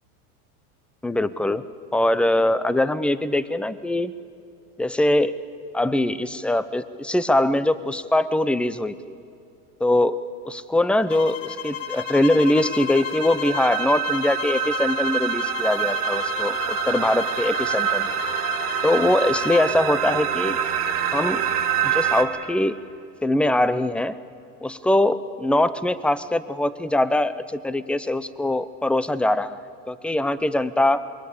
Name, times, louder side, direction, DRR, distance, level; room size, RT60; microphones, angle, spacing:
voice 1, 1.0-1.6 1.9-4.1 4.8-5.4 5.7-9.2 9.8-10.2 10.4-18.1 18.8-20.6 21.1-21.4 21.8-22.7 23.2-24.1 24.6-29.6 29.9-31.0, left 1 dB, 5° left, 15 dB, 0.6 m, -22 dB
sound 1, 11.1-19.7, left 12 dB, 35° left, 0.8 m, -33 dB
sound 2, 11.7-22.2, right 9 dB, 90° right, 2.2 m, -26 dB
27.5 x 22.0 x 7.0 m, 2.5 s
supercardioid pair, 115°, 44 cm